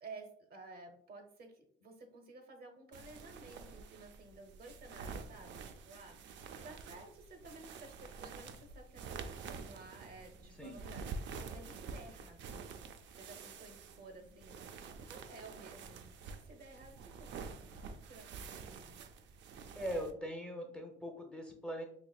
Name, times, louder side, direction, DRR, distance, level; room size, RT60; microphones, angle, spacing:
voice 1, 0.0-12.6 13.2-14.6 15.0-19.0, right 3 dB, 50° right, 5 dB, 0.8 m, -54 dB
sound 1, 2.9-20.1, right 5 dB, 70° right, 0.4 m, -48 dB
voice 2, 19.7-21.8, equal, 5° left, 2 dB, 0.7 m, -41 dB
4.3 x 2.8 x 2.3 m, 0.64 s
cardioid pair, 90°, 20 cm